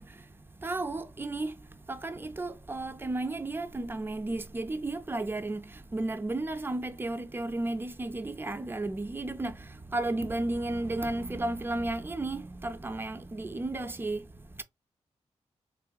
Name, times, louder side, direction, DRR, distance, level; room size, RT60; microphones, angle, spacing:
voice 1, 0.0-14.6, right 2 dB, 20° right, 0.4 m, -34 dB
3.6 x 3.1 x 2.2 m
wide cardioid pair, 110°, 11 cm